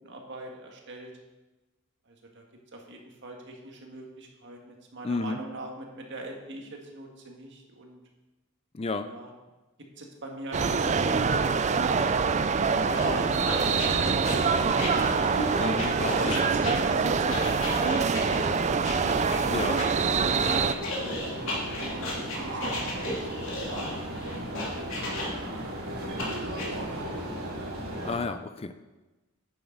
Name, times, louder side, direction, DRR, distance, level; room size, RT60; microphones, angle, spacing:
voice 1, 0.0-1.1 2.1-2.4 2.7-8.0 9.0-9.3 10.0-13.3 16.0-19.3 21.0-22.1 22.3-25.5 26.0-27.4, right 1 dB, 55° right, 1 dB, 1.8 m, -43 dB
voice 2, 5.0-5.4 8.7-9.1 15.5-16.3 19.5-19.8 28.0-28.7, left 3 dB, 25° left, 10 dB, 0.4 m, -31 dB
sound 1, 10.5-20.7, right 5 dB, 30° right, 0.4 m, -25 dB
sound 2, 12.6-28.2, right 1 dB, 75° right, 3.1 m, -36 dB
sound 3, 12.9-19.9 20.4-25.6 26.2-26.7, left 1 dB, 65° left, 2.7 m, -35 dB
11.0 x 8.6 x 4.0 m, 1.1 s
head